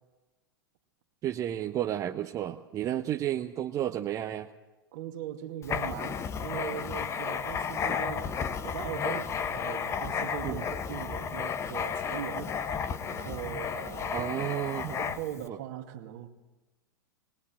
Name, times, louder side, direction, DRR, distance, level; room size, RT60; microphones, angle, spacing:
voice 1, 1.2-4.5 10.4-10.6 14.1-15.0 15.5-15.6, right 11 dB, 30° right, 5 dB, 1.0 m, -32 dB
voice 2, 4.9-14.3 14.7-16.3, right 11 dB, 50° right, 6 dB, 2.3 m, -40 dB
Writing, 5.6-15.4, left 7 dB, 25° left, 1.2 m, -33 dB
22.0 x 20.0 x 7.7 m, 1.1 s
figure-of-eight pair, 95°, 12 cm